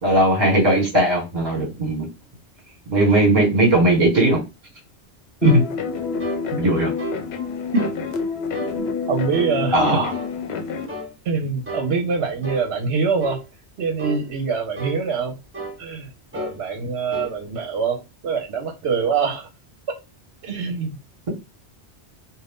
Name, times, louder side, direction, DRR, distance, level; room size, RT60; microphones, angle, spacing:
voice 1, 0.0-2.1 2.9-4.4 5.4-5.6 6.5-6.9 9.7-10.1, right 1 dB, 40° right, 1.3 m, -18 dB
sound 1, 5.4-10.9, left 5 dB, 70° left, 0.8 m, -28 dB
sound 2, 5.4-5.7 6.2-6.4 7.0-7.2 7.7-8.0 8.5-8.8 9.3-9.6 10.1-10.3 10.9-11.1 11.7-11.9 12.4-12.7 13.2-13.4 14.0-14.2 14.8-15.0 15.5-15.8 16.3-16.6 17.1-17.3, right 2 dB, 15° right, 0.7 m, -32 dB
voice 2, 8.7-10.0 11.2-13.4 13.8-15.4 15.8-16.1 16.3-19.5 20.4-20.9, right 5 dB, 75° right, 0.9 m, -24 dB
2.5 x 2.3 x 3.4 m
omnidirectional pair, 1.1 m